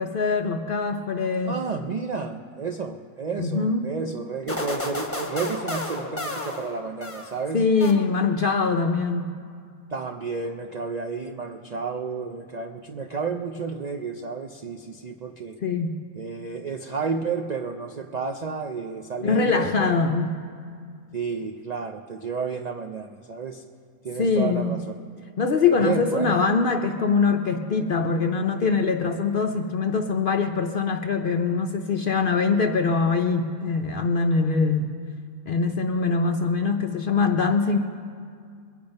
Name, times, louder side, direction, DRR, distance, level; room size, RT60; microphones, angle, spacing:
voice 1, 0.0-1.5 3.4-3.9 7.5-9.3 15.6-16.0 19.2-20.3 24.2-24.8 25.4-34.9 35.5-37.8, left 4 dB, 60° left, 5 dB, 0.6 m, -23 dB
voice 2, 1.4-7.6 9.9-15.6 16.2-20.0 21.1-23.6 24.0-24.8 25.8-26.4, right 5 dB, 70° right, 3 dB, 0.4 m, -31 dB
sound 1, 4.5-7.4 7.8-8.5, left 2 dB, 10° left, 1.0 m, -32 dB
22.0 x 8.7 x 5.3 m, 2.2 s
omnidirectional pair, 1.5 m